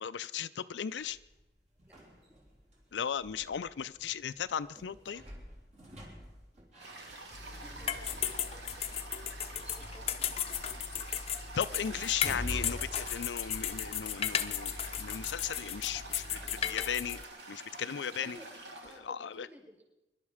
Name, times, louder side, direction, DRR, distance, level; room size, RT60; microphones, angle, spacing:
voice 1, 0.0-1.2 2.9-5.2 11.6-17.2 17.5-18.4 19.0-19.5, left 8 dB, 85° left, 12 dB, 0.5 m, -36 dB
sound 1, 0.9-16.6, equal, 40° right, 3.5 m, -49 dB
Toilet flush, 6.8-19.0, right 2 dB, 75° right, 2.5 m, -48 dB
sound 2, 7.3-17.2, left 9 dB, 35° left, 0.7 m, -36 dB
voice 2, 7.8-10.7 18.2-19.8, equal, 15° right, 1 dB, 4.8 m, -57 dB
25.0 x 11.5 x 4.9 m, 0.97 s
head